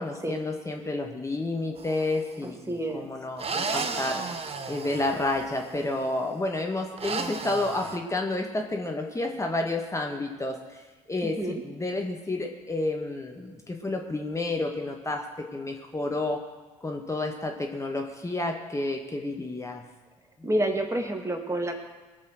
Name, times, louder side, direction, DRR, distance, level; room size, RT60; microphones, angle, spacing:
voice 1, 0.0-4.2 4.7-15.2 15.5-16.4 16.8-19.8, left 2 dB, 20° left, 2 dB, 1.8 m, -30 dB
sound 1, 1.8-2.3 3.4-5.8 7.0-8.0, right 4 dB, 35° right, 1.4 m, -34 dB
voice 2, 2.4-3.1 11.2-11.6 20.4-21.8, right 1 dB, 15° right, 4 dB, 2.5 m, -29 dB
22.0 x 7.5 x 6.4 m, 1.2 s
figure-of-eight pair, 45°, 16 cm